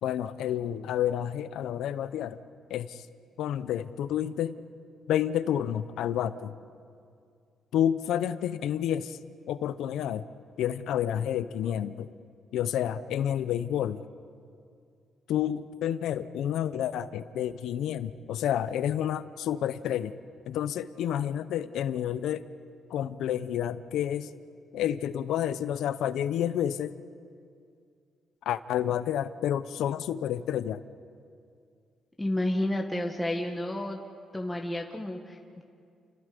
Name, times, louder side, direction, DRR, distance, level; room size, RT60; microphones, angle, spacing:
voice 1, 0.0-2.4 2.7-3.1 3.4-4.6 5.1-6.5 7.7-9.2 9.5-10.2 10.6-12.1 12.5-14.0 15.3-20.1 20.5-22.4 22.9-24.3 24.7-26.9 28.5-30.8, left 10 dB, 80° left, 14 dB, 0.8 m, -29 dB
voice 2, 32.2-34.0 34.3-35.6, left 1 dB, 10° left, 1 dB, 1.7 m, -31 dB
30.0 x 25.5 x 5.3 m, 2.3 s
cardioid pair, 90°, 0 cm